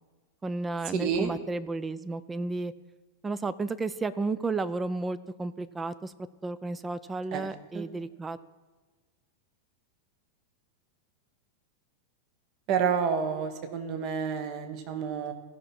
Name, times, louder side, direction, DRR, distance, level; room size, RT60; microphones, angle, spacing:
voice 1, 0.4-2.7 3.2-6.1 6.4-8.4, right 3 dB, 15° right, 14 dB, 0.4 m, -32 dB
voice 2, 1.0-1.3 7.3-7.5 7.7-7.9 12.7-15.3, right 7 dB, 40° right, 7 dB, 1.1 m, -29 dB
16.0 x 5.7 x 4.3 m, 1.3 s
figure-of-eight pair, 90°, 0 cm